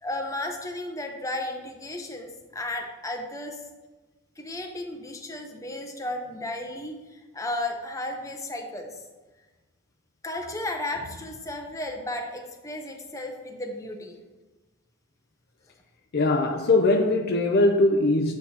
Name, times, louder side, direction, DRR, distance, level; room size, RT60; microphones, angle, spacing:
voice 1, 0.0-3.6 4.4-9.1 10.2-14.2, left 1 dB, 15° left, 0.7 m, -34 dB
voice 2, 16.1-18.4, left 2 dB, 45° left, 0.4 m, -21 dB
8.3 x 7.1 x 2.8 m
head